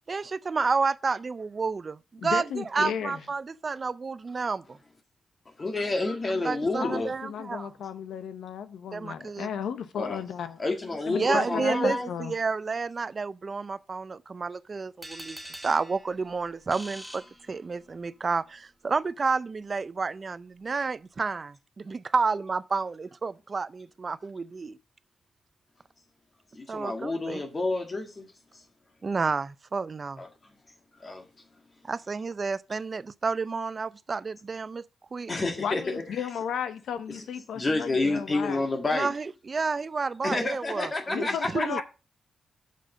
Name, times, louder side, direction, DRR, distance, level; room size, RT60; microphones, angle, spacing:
voice 1, 0.1-4.8 6.4-7.7 8.9-9.5 11.1-15.4 15.6-21.5 21.9-24.8 26.7-27.4 29.0-30.2 31.8-34.8 35.1-35.3 38.9-41.8, right 4 dB, 45° right, 0.5 m, -30 dB
voice 2, 2.2-3.2 6.8-10.6 11.1-12.3 35.6-38.6 41.1-41.8, left 8 dB, 90° left, 0.9 m, -34 dB
voice 3, 5.6-7.1 9.9-10.2 10.6-12.1 26.5-28.6 30.2-30.3 31.0-31.2 35.3-36.2 37.1-37.2 37.5-39.1 40.2-41.7, left 2 dB, 35° left, 1.7 m, -29 dB
sound 1, 15.0-18.1, right 1 dB, 5° right, 1.6 m, -45 dB
6.7 x 5.1 x 6.6 m
cardioid pair, 75°, 0 cm